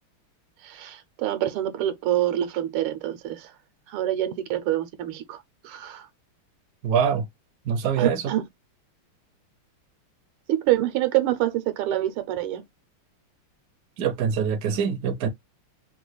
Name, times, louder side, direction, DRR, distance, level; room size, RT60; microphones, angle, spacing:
voice 1, 0.6-3.5 3.9-6.1 8.0-8.4 10.5-12.6, right 13 dB, 85° right, 1.6 m, -26 dB
voice 2, 6.8-7.3 7.7-8.2 14.0-15.3, right 7 dB, 70° right, 0.9 m, -24 dB
3.6 x 2.3 x 3.1 m
omnidirectional pair, 2.4 m